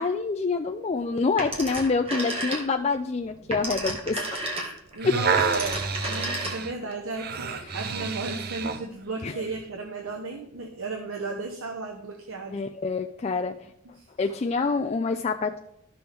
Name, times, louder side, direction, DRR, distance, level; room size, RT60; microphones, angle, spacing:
voice 1, 0.0-4.2 5.0-5.1 7.5-7.6 9.2-9.4 12.5-13.5 14.2-15.6, left 4 dB, 30° left, 4 dB, 0.3 m, -26 dB
Telephone, 1.4-2.9 3.3-6.9, right 1 dB, 25° right, 1.6 m, -32 dB
sound 1, 4.8-8.9 9.5-9.6, right 5 dB, 45° right, 0.6 m, -29 dB
voice 2, 4.9-5.8 6.1-12.6 13.8-14.1, right 3 dB, 75° right, 2 dB, 0.9 m, -35 dB
13.0 x 6.1 x 3.4 m, 0.77 s
head